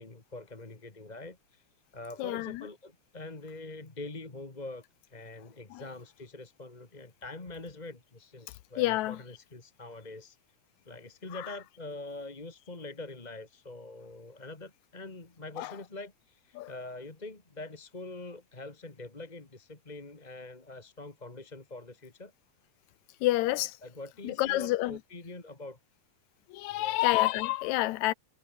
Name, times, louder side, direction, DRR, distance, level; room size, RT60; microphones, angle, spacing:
voice 1, 0.0-1.6 1.9-4.8 5.1-10.4 10.9-22.3 23.8-25.8 26.7-27.0, left 2 dB, 15° left, 1.7 m, -44 dB
voice 2, 2.2-2.7 5.7-5.8 8.8-9.2 11.4-11.5 15.6-15.7 16.6-16.7 23.2-23.8 24.2-25.0 26.5-28.1, left 17 dB, 80° left, 2.0 m, -28 dB
omnidirectional pair, 3.3 m